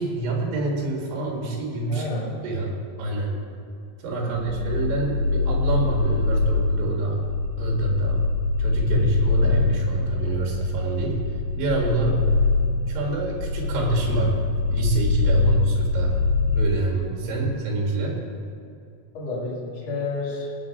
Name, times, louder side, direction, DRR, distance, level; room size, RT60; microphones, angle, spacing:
voice 1, 0.0-2.0 2.4-2.7 3.0-3.3 4.0-7.2 7.6-8.2 8.6-11.3 11.5-12.1 12.9-14.3 14.7-16.2 16.5-18.2, right 2 dB, 90° right, -1 dB, 4.4 m, -26 dB
voice 2, 1.9-2.4 4.2-4.6 11.9-12.2 15.3-15.8 17.2-17.5 19.1-20.5, left 1 dB, 45° left, -5 dB, 2.9 m, -31 dB
sound 1, 4.3-16.7, left 3 dB, 75° left, 4.7 m, -24 dB
19.5 x 7.6 x 4.7 m, 2.5 s
omnidirectional pair, 5.1 m